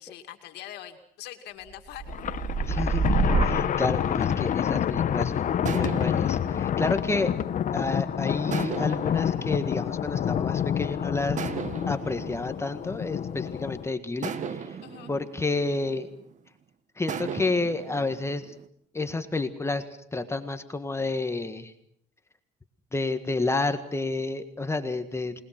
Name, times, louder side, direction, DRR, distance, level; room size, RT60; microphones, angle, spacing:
voice 1, 0.0-2.5 14.8-15.1, left 12 dB, 85° left, 6 dB, 2.4 m, -43 dB
sound 1, 1.7-9.7 10.2-10.6, right 4 dB, 30° right, 2.9 m, -31 dB
Thunder, 2.1-13.9, left 9 dB, 50° left, 1.1 m, -28 dB
voice 2, 2.6-7.3 7.7-11.4 11.9-14.8 15.1-16.1 17.0-18.5 18.9-19.8 20.1-21.7 22.9-25.4, left 3 dB, 15° left, 8 dB, 1.7 m, -30 dB
sound 2, 3.7-5.0 5.6-7.9 8.5-10.7 11.4-13.6 14.2-16.5 17.1-18.7, right 7 dB, 45° right, 1.8 m, -38 dB
29.0 x 20.5 x 6.1 m, 0.66 s
cardioid pair, 110°, 17 cm